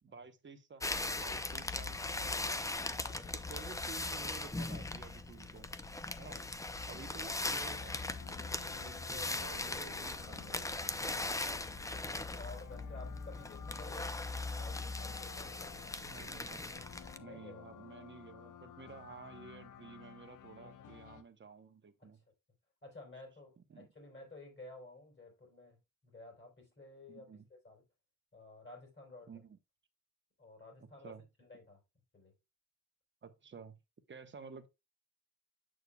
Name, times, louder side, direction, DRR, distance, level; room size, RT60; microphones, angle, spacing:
voice 1, 0.0-2.7 3.3-5.7 6.2-6.4 6.9-8.0 8.8-10.8 16.0-16.7 17.2-22.2 23.7-23.9 27.1-27.5 29.3-29.6 30.8-31.2 33.2-33.8 34.1-34.7, right 5 dB, 30° right, 0.9 m, -53 dB
sound 1, 0.8-17.2, left 2 dB, 10° left, 0.4 m, -39 dB
voice 2, 2.9-3.6 5.8-5.9 6.3-6.5 6.8-7.0 8.5-9.5 11.7-15.9 17.2-17.6 20.6-20.9 22.0-22.1 22.8-25.8 26.0-27.3 27.6-27.8 28.3-29.4 30.4-31.8 32.1-32.3, left 2 dB, 30° left, 3.8 m, -54 dB
sound 2, 6.9-21.2, left 9 dB, 55° left, 0.7 m, -54 dB
8.3 x 6.4 x 2.3 m
cardioid pair, 125°, 37 cm